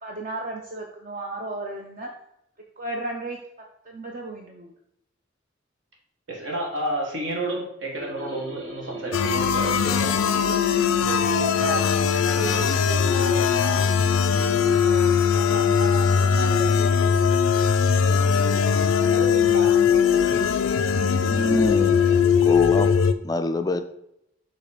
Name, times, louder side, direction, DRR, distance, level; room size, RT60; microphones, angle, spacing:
voice 1, 0.0-2.1 2.8-3.4 3.8-4.7 10.4-11.8 12.2-14.0 14.2-17.3 18.9-19.7 22.0-22.3, right 1 dB, 40° right, 1 dB, 0.6 m, -35 dB
voice 2, 6.3-10.1, right 1 dB, 70° right, -1 dB, 1.8 m, -30 dB
sound 1, 8.0-13.2, left 1 dB, 90° right, 1.7 m, -42 dB
sound 2, 9.1-23.1, left 6 dB, 90° left, 0.4 m, -20 dB
voice 3, 21.3-22.0 22.4-22.9 23.2-23.8, left 2 dB, 20° left, 8 dB, 0.3 m, -25 dB
6.2 x 3.2 x 5.0 m, 0.77 s
head